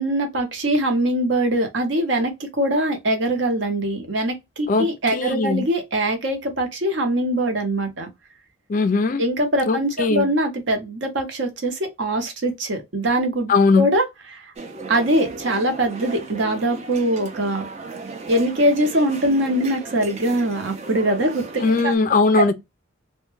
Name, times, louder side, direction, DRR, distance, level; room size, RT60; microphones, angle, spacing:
voice 1, 0.0-8.1 9.2-14.4 14.9-17.7 18.3-21.9 22.4-22.5, right 1 dB, 60° right, 0.7 m, -22 dB
voice 2, 4.7-5.6 8.7-9.2 9.7-10.3 13.5-13.8 21.6-22.5, left 4 dB, 40° left, 0.3 m, -19 dB
sound 1, 14.6-22.0, right 3 dB, 35° right, 0.4 m, -36 dB
2.2 x 2.1 x 3.0 m
head